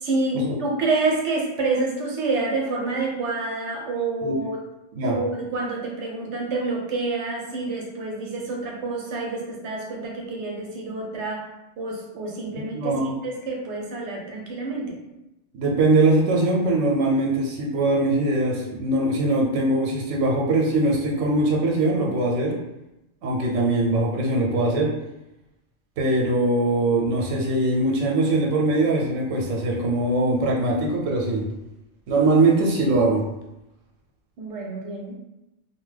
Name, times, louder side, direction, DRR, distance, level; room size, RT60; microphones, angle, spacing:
voice 1, 0.0-4.6 5.0-11.4 11.8-13.0 13.2-15.0 34.4-35.2, right 3 dB, 70° right, -1 dB, 0.9 m, -28 dB
voice 2, 12.7-13.1 15.5-22.6 23.2-24.9 26.0-31.4 32.1-33.2, right 2 dB, 90° right, -1 dB, 1.0 m, -21 dB
2.8 x 2.1 x 3.2 m, 0.93 s
omnidirectional pair, 1.3 m